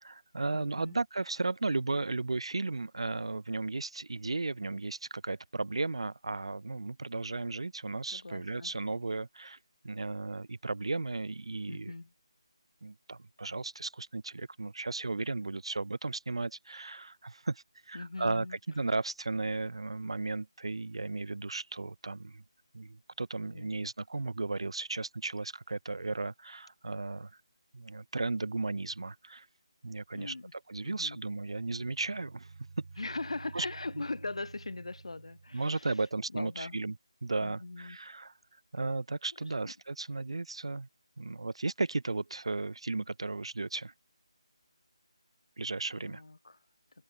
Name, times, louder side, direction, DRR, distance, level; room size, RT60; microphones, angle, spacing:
voice 1, 0.0-9.6 9.8-11.9 12.8-22.4 22.7-27.3 27.7-29.5 29.8-32.5 32.8-32.9 33.5-33.6 35.5-36.9 37.2-38.3 38.7-40.9 41.2-43.9 45.6-46.2, right 3 dB, 65° right, 1.2 m, -35 dB
voice 2, 0.5-1.0 8.1-8.7 11.7-12.1 17.9-18.6 23.5-23.9 30.1-30.5 30.8-31.2 33.0-36.0 36.3-36.8 37.4-38.0 39.3-39.7 46.0-46.6, left 2 dB, 70° left, 6.2 m, -41 dB
sound 1, 31.2-35.9, right 4 dB, 45° right, 3.8 m, -51 dB
figure-of-eight pair, 180°, 3 cm